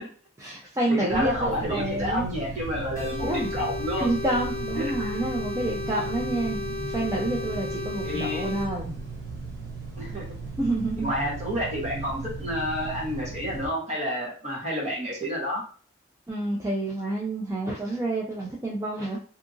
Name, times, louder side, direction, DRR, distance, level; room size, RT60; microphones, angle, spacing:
voice 1, 0.4-2.3 3.2-3.5 4.0-9.0 10.6-11.1 16.3-19.2, right 1 dB, 15° right, -4 dB, 0.3 m, -28 dB
voice 2, 0.9-4.1 4.8-5.1 8.0-8.5 10.0-10.2 11.0-15.6, equal, 35° right, -3 dB, 1.0 m, -30 dB
sound 1, 1.1-13.7, right 3 dB, 85° right, 0.8 m, -37 dB
sound 2, 2.9-8.7, left 3 dB, 15° left, 1.1 m, -34 dB
2.7 x 2.5 x 2.4 m, 0.41 s
head